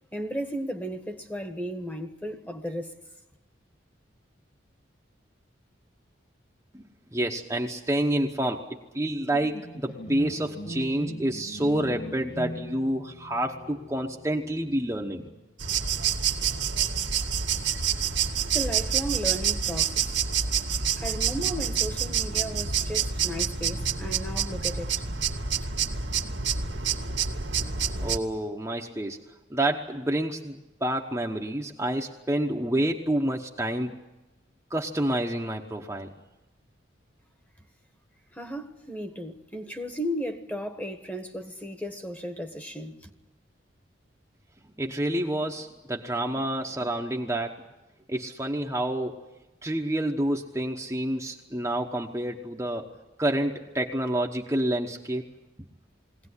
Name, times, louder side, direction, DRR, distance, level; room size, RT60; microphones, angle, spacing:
voice 1, 0.1-3.0 18.4-20.2 20.8-25.0 38.3-43.1, equal, 10° left, 1.4 m, -35 dB
voice 2, 6.7-15.2 28.0-29.2 29.5-33.9 34.7-36.1 44.8-47.6 48.1-49.2 49.6-52.9 53.2-55.3, right 1 dB, 15° right, 1.1 m, -28 dB
sound 1, 9.3-15.6, equal, 50° left, 3.0 m, -40 dB
sound 2, 15.6-28.2, right 7 dB, 75° right, 2.0 m, -27 dB
21.5 x 17.5 x 9.8 m
head